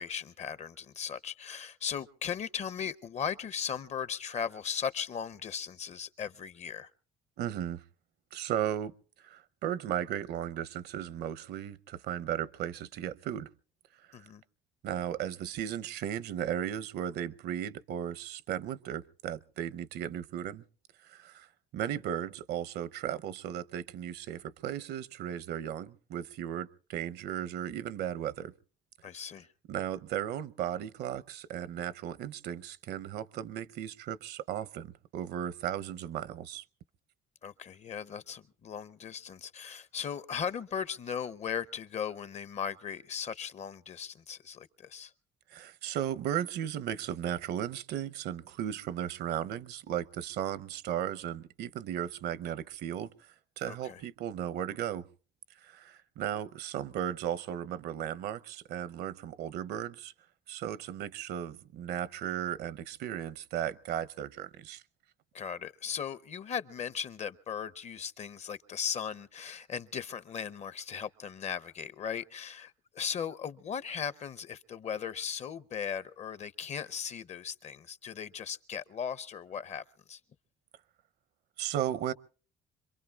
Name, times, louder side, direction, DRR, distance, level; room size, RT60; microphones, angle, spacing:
voice 1, 0.0-6.9 14.1-14.4 29.0-29.5 37.4-45.1 53.7-54.0 65.3-80.2, left 7 dB, 40° left, 0.7 m, -37 dB
voice 2, 7.4-7.8 8.3-13.5 14.1-14.3 14.8-20.6 21.0-28.5 29.7-36.6 45.5-53.3 53.6-55.1 55.6-60.1 60.5-64.8 81.6-82.1, right 10 dB, 75° right, 0.8 m, -36 dB
26.0 x 22.5 x 2.4 m
cardioid pair, 110°, 17 cm